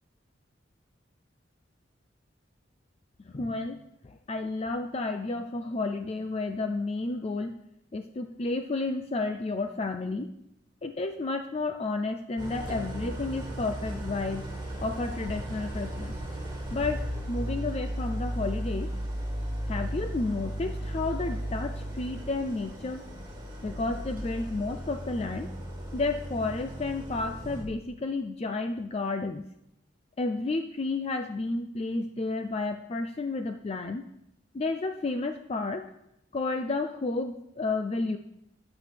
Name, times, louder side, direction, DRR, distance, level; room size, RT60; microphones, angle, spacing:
voice 1, 3.2-3.8 4.0-7.6 7.9-10.3 10.8-14.5 14.8-16.2 16.7-18.9 19.7-23.0 23.6-25.5 25.9-29.4 30.2-34.0 34.5-35.9 36.3-38.2, left 3 dB, 35° left, 7 dB, 0.4 m, -31 dB
Idling, 12.4-27.6, right 1 dB, 25° right, 2.2 m, -35 dB
12.5 x 8.2 x 3.4 m, 0.81 s
head